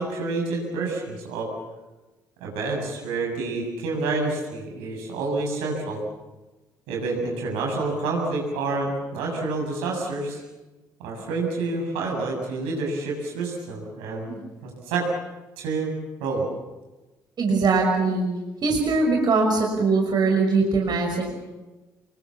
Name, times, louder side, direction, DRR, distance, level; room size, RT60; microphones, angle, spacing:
voice 1, 0.0-1.5 2.4-6.0 6.9-10.4 11.0-14.3 14.6-15.1 15.6-16.5, right 3 dB, 65° right, 0 dB, 7.5 m, -28 dB
voice 2, 17.4-18.3 18.6-21.2, right 3 dB, 45° right, 1 dB, 5.9 m, -21 dB
28.5 x 22.0 x 7.3 m, 1.1 s
figure-of-eight pair, 50°, 10 cm